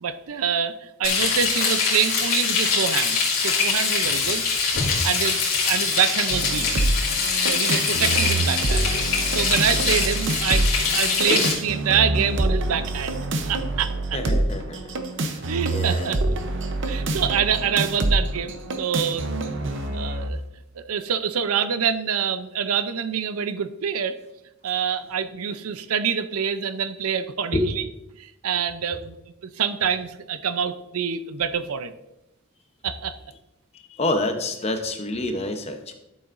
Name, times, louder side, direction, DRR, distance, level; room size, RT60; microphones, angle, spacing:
voice 1, 0.0-4.4 5.0-5.4 5.7-6.7 7.4-8.9 9.3-14.2 15.5-16.4 16.8-19.4 19.9-20.4 20.8-24.2 24.6-27.8 28.2-29.2 29.4-31.9 32.8-33.2, right 7 dB, 85° right, 12 dB, 0.6 m, -26 dB
Frying (food), 1.0-11.5, left 5 dB, 75° left, 2.7 m, -23 dB
sound 1, 6.3-20.3, right 2 dB, 55° right, 0.8 m, -26 dB
voice 2, 14.1-16.1 19.7-20.2 27.5-27.6 28.5-28.8 33.9-35.9, left 2 dB, 30° left, 6 dB, 0.8 m, -29 dB
12.5 x 7.0 x 2.6 m, 0.90 s
head